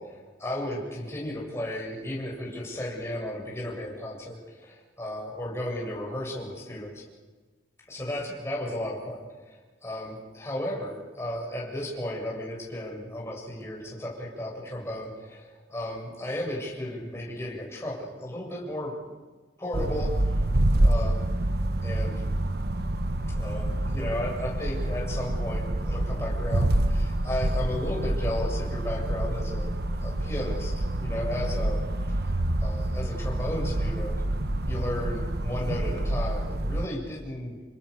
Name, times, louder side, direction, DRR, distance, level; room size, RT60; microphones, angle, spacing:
voice 1, 0.0-7.0 7.9-18.9 19.6-20.4 20.8-21.3 21.8-22.2 23.3-29.7 30.0-31.8 32.6-34.1 34.7-37.6, left 1 dB, 15° left, -3 dB, 7.6 m, -34 dB
sound 1, 19.7-36.9, right 1 dB, 60° right, 1.3 m, -27 dB
29.5 x 25.0 x 6.7 m, 1.3 s
head